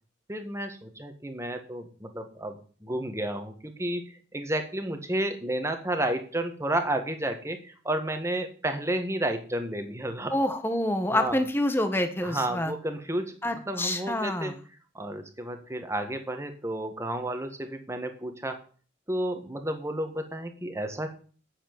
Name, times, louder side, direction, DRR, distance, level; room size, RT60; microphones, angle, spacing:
voice 1, 0.3-10.3 11.1-11.4 12.2-14.5 14.9-18.6 19.1-21.1, right 1 dB, 15° right, 6 dB, 1.7 m, -31 dB
voice 2, 10.3-12.7 13.4-14.6, left 1 dB, 10° left, 8 dB, 1.3 m, -27 dB
8.9 x 7.4 x 8.8 m, 0.40 s
head